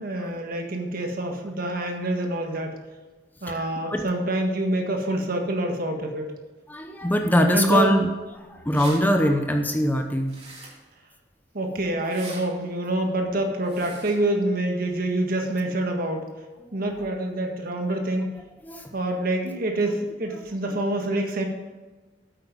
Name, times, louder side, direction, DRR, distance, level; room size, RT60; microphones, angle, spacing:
voice 1, 0.0-2.8 3.4-6.3 7.5-7.9 11.5-16.3 16.7-18.3 18.9-21.4, right 1 dB, 55° right, 3 dB, 1.7 m, -26 dB
voice 2, 6.7-8.1 8.5-10.4 18.6-18.9, equal, 10° left, 4 dB, 0.8 m, -22 dB
sound 1, 8.2-8.3 8.5-9.0 10.3-10.9 12.0-12.4 13.6-14.2, right 3 dB, 35° right, 3.3 m, -41 dB
9.3 x 8.3 x 5.2 m, 1.3 s
head